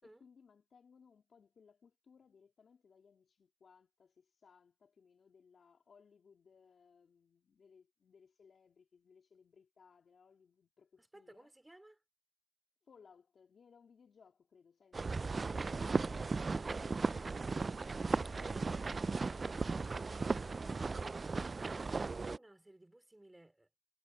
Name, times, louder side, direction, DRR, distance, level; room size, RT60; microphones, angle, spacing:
voice 1, 0.0-11.5 12.8-21.2, left 6 dB, 60° left, 3.1 m, -65 dB
voice 2, 11.0-12.0 21.6-23.7, right 1 dB, 15° right, 4.2 m, -59 dB
sound 1, 14.9-22.4, right 4 dB, 40° right, 0.4 m, -36 dB
cardioid pair, 70°, 0 cm